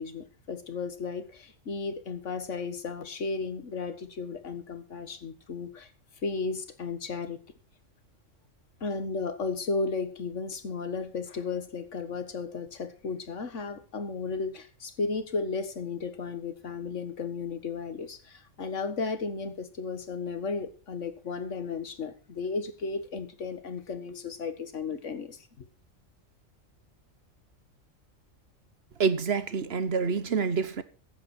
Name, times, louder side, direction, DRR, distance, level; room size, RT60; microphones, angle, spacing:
voice 1, 0.0-5.9 6.2-7.4 8.8-25.7, left 4 dB, 70° left, 1.9 m, -34 dB
voice 2, 29.0-30.8, right 5 dB, 55° right, 1.2 m, -27 dB
14.5 x 10.5 x 4.3 m
omnidirectional pair, 1.3 m